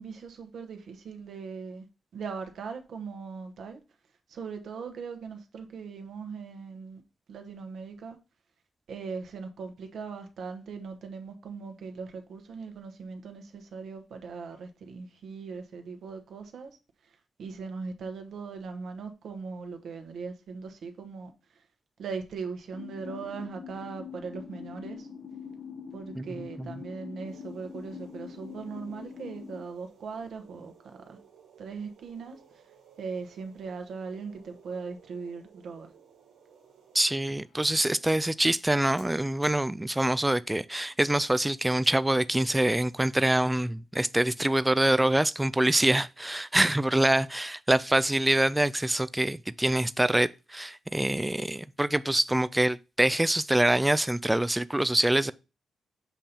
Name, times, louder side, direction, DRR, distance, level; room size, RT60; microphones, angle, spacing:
voice 1, 0.0-1.9 2.1-3.8 4.3-7.0 7.3-8.2 8.9-16.7 17.0-21.6 22.0-25.1 25.9-31.2 31.6-32.4 33.0-35.9, right 5 dB, 70° right, 1.1 m, -39 dB
sound 1, 22.7-29.6, left 6 dB, 50° left, 1.0 m, -43 dB
sound 2, 27.2-37.2, right 7 dB, 85° right, 1.6 m, -58 dB
voice 2, 36.9-55.3, right 1 dB, 10° right, 0.4 m, -25 dB
Fire, 37.1-42.5, left 2 dB, 90° left, 3.9 m, -61 dB
7.3 x 2.8 x 5.2 m
supercardioid pair, 55°, 0 cm